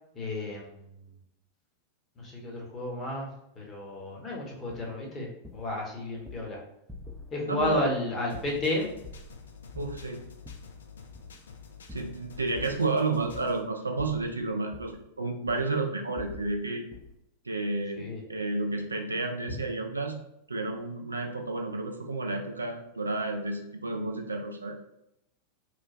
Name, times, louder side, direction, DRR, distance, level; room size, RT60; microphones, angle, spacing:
voice 1, 0.1-1.0 2.2-3.3 3.6-5.3 5.5-6.6 7.3-8.9 18.0-18.2, left 1 dB, 25° left, -2 dB, 0.8 m, -32 dB
sound 1, 4.7-4.9 5.4-5.8 6.2-6.5 6.9-7.3 7.6-7.9 8.3-9.4 9.7-10.7 11.1-11.4 11.9-12.9 13.3-13.7 14.0-15.0 15.5-15.8 16.2-16.6 16.9-17.2, left 3 dB, 10° right, 0.4 m, -45 dB
voice 2, 7.4-7.8 9.8-10.2 11.9-16.8 17.5-20.2 20.5-24.8, right 3 dB, 80° right, 3 dB, 0.3 m, -31 dB
sound 2, 8.3-13.6, left 5 dB, 65° left, 0.3 m, -49 dB
3.0 x 2.1 x 2.5 m, 0.81 s
figure-of-eight pair, 90°, 0 cm